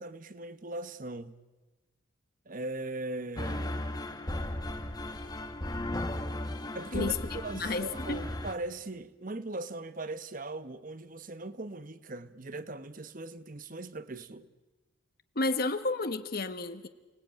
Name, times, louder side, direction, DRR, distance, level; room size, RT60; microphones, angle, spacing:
voice 1, 0.0-1.3 2.5-3.8 6.7-7.2 7.4-14.5, right 2 dB, 40° right, 1.0 m, -39 dB
sound 1, 3.4-8.5, left 1 dB, 20° left, 1.3 m, -36 dB
voice 2, 6.9-8.3 15.3-16.9, left 3 dB, 45° left, 1.1 m, -32 dB
29.5 x 19.5 x 8.9 m
head